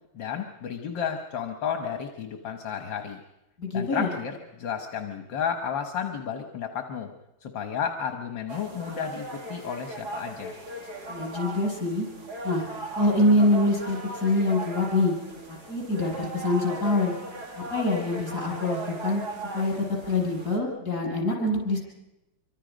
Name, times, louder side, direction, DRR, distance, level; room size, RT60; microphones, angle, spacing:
voice 1, 0.1-3.2 3.7-7.1 7.4-10.6, left 7 dB, 75° left, 5 dB, 2.0 m, -32 dB
voice 2, 3.6-4.1 11.1-12.1 12.4-12.6 13.0-15.1 15.5-17.1 17.6-19.2 19.5-21.8, left 2 dB, 45° left, -2 dB, 7.6 m, -25 dB
sound 1, 8.5-20.6, right 2 dB, 55° right, 3.1 m, -38 dB
26.5 x 24.5 x 5.2 m, 0.90 s
omnidirectional pair, 2.1 m